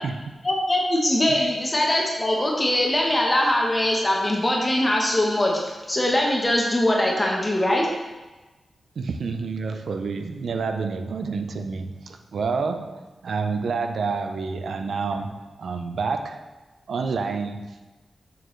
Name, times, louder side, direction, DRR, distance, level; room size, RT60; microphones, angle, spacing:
voice 1, 0.4-7.9, left 1 dB, 20° left, -1 dB, 1.0 m, -22 dB
voice 2, 9.0-16.4 16.9-17.9, right 4 dB, 70° right, 7 dB, 0.5 m, -29 dB
6.6 x 6.6 x 3.2 m, 1.2 s
wide cardioid pair, 100°, 0 cm